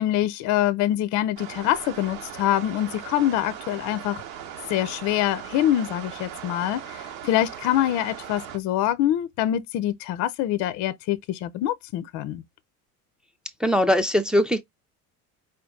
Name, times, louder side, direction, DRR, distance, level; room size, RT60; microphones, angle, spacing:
voice 1, 0.0-4.2 4.7-12.4, left 12 dB, 40° left, 0.6 m, -25 dB
sound 1, 1.4-8.6, right 10 dB, 65° right, 1.1 m, -39 dB
voice 2, 13.6-14.6, equal, ahead, 0.5 m, -21 dB
5.0 x 2.3 x 3.6 m
figure-of-eight pair, 65°, 43 cm